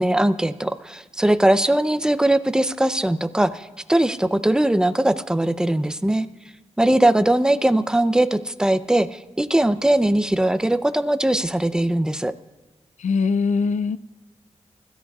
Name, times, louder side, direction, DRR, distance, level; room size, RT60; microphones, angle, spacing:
voice 1, 0.0-6.3 6.8-12.3, right 1 dB, 5° right, 11 dB, 0.6 m, -20 dB
voice 2, 13.0-14.0, left 5 dB, 90° left, 15 dB, 0.5 m, -21 dB
24.5 x 13.5 x 2.4 m, 1.3 s
wide cardioid pair, 115°, 12 cm